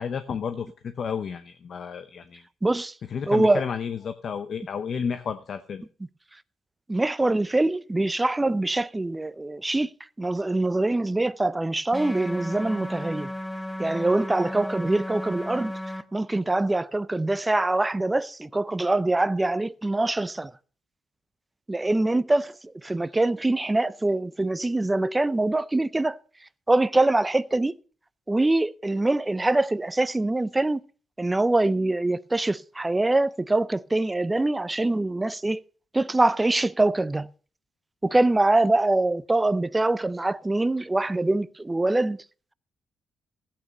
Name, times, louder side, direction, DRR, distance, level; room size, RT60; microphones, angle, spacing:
voice 1, 0.0-2.4 3.1-5.8, left 6 dB, 55° left, 0.8 m, -31 dB
voice 2, 2.6-2.9 3.3-3.6 6.9-9.9 10.2-13.3 13.8-15.7 16.1-20.5 21.7-26.2 26.7-27.7 28.3-30.8 31.2-35.6 35.9-37.3 38.0-42.2, right 2 dB, 15° right, 0.5 m, -24 dB
sound 1, 11.9-16.0, left 1 dB, 5° left, 0.9 m, -34 dB
14.0 x 8.8 x 5.3 m
cardioid pair, 90°, 0 cm